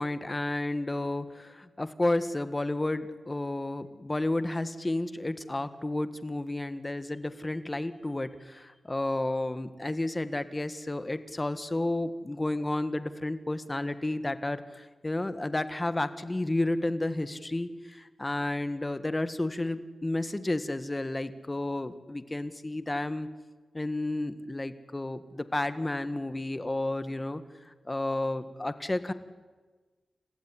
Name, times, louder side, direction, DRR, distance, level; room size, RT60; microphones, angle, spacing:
voice 1, 0.0-23.3 23.7-27.4 27.9-29.1, left 2 dB, 25° left, 12 dB, 1.7 m, -31 dB
29.0 x 15.5 x 10.0 m, 1.4 s
cardioid pair, 65°, 0 cm